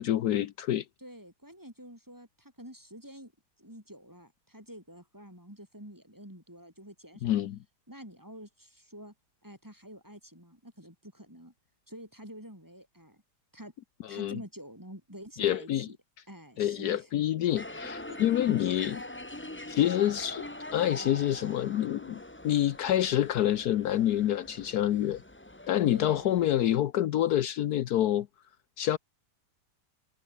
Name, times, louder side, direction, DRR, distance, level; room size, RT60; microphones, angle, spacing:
voice 1, 0.0-0.8 7.2-7.6 14.1-14.4 15.4-15.9 16.6-19.0 19.7-25.2 25.7-28.3 28.8-29.0, left 12 dB, 70° left, 1.2 m, -27 dB
voice 2, 1.0-3.3 3.6-7.4 7.9-9.1 9.4-11.5 11.9-13.2 13.5-13.7 14.1-16.0 16.3-17.2 17.5-17.6 18.0-18.2 18.9-19.1 25.9-26.4, equal, 10° right, 5.4 m, -48 dB
sound 1, 17.5-26.8, left 1 dB, 10° left, 1.1 m, -43 dB
omnidirectional pair, 1.8 m